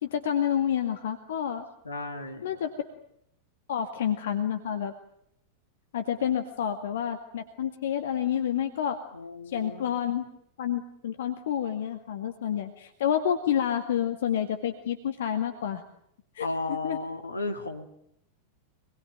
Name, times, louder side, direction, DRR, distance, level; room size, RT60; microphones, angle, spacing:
voice 1, 0.0-1.7 2.4-2.7 3.7-4.9 5.9-9.0 9.5-10.3 10.6-15.8 16.3-17.0, left 9 dB, 60° left, 7 dB, 2.1 m, -29 dB
voice 2, 1.8-2.5 9.1-10.0 16.4-17.9, left 2 dB, 80° left, 5 dB, 3.4 m, -34 dB
26.5 x 21.5 x 9.3 m, 0.73 s
figure-of-eight pair, 90°, 0 cm